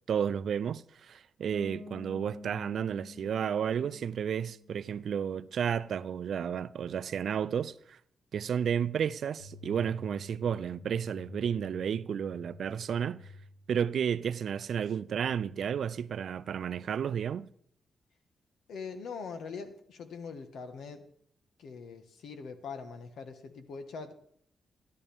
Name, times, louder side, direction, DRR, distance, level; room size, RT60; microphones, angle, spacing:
voice 1, 0.1-8.0 8.3-13.2 13.7-17.5, right 8 dB, 65° right, 0.4 m, -32 dB
Bass guitar, 1.5-5.2, left 3 dB, 50° left, 1.3 m, -49 dB
sound 1, 9.4-16.2, left 1 dB, 70° left, 4.0 m, -51 dB
voice 2, 18.7-21.1 21.6-24.1, left 5 dB, 90° left, 1.4 m, -42 dB
13.0 x 12.0 x 3.5 m
wide cardioid pair, 135°, 0 cm